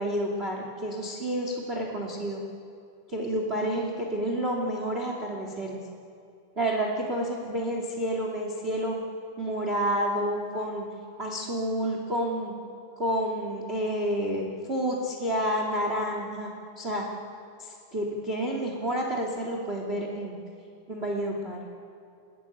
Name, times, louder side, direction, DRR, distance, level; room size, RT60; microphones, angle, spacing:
voice 1, 0.0-2.4 3.1-5.8 6.5-9.0 9.4-10.8 11.2-12.5 13.0-16.5 16.7-17.0 17.6-20.4 20.9-21.6, right 1 dB, 25° right, 0 dB, 1.3 m, -29 dB
27.5 x 20.0 x 9.9 m, 2.5 s
omnidirectional pair, 5.3 m